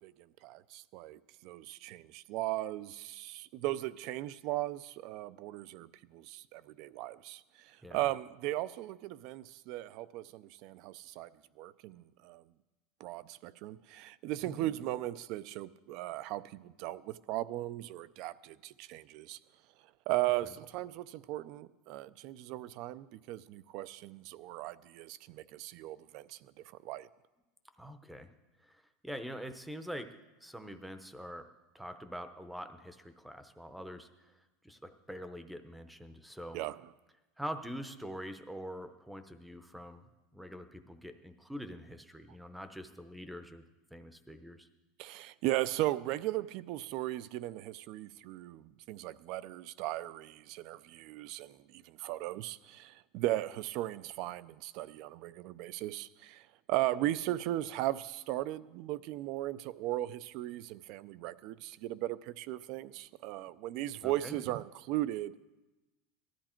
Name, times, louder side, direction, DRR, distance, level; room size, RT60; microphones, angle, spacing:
voice 1, 0.0-11.3 11.6-12.4 13.0-19.4 20.1-27.1 36.5-36.9 45.0-65.3, right 15 dB, 45° right, 0.5 m, -37 dB
voice 2, 27.8-28.3 28.6-30.1 30.4-31.5 31.7-34.1 34.6-36.6 37.4-40.1 40.3-43.6 43.9-44.7 64.0-64.4, equal, ahead, 0.7 m, -44 dB
18.5 x 13.0 x 4.4 m
supercardioid pair, 165°, 0 cm